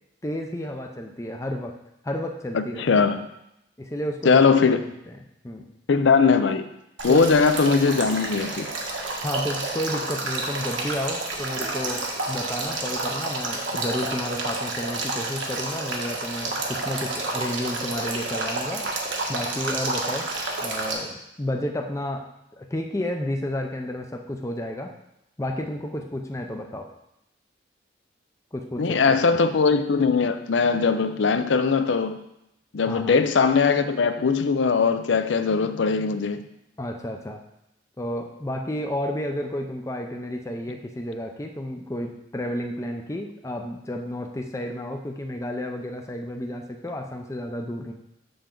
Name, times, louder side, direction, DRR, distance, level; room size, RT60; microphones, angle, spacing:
voice 1, 0.2-1.8 2.0-2.8 3.8-4.4 5.1-5.2 5.4-5.7 7.1-7.3 9.2-18.9 19.3-20.3 20.6-24.9 25.4-26.9 28.5-29.2 32.9-33.1 36.8-37.4 38.0-47.9, left 1 dB, 15° left, 3 dB, 0.5 m, -31 dB
voice 2, 2.5-3.2 4.2-4.8 5.9-6.7 7.0-8.7 28.8-32.2 32.7-36.4, left 5 dB, 75° left, 10 dB, 0.5 m, -20 dB
Male speech man speaking / Stream / Trickle dribble, 7.0-20.9, right 2 dB, 80° right, 1.3 m, -30 dB
6.9 x 6.7 x 3.8 m, 0.84 s
head